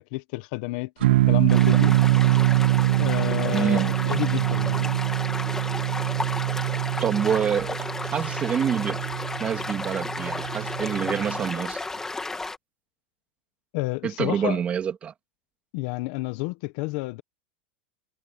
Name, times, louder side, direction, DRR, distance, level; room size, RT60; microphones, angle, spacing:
voice 1, 0.0-2.0 3.0-5.0 13.7-14.6 15.7-17.2, left 22 dB, 50° left, 1.2 m, -30 dB
sound 1, 1.0-11.5, right 16 dB, 80° right, 0.9 m, -24 dB
sound 2, 1.5-12.6, left 3 dB, 10° left, 2.5 m, -33 dB
voice 2, 3.5-3.9 7.0-7.8 8.1-9.0 9.4-11.8 14.0-15.1, right 8 dB, 20° right, 2.9 m, -26 dB
supercardioid pair, 160°, 6 cm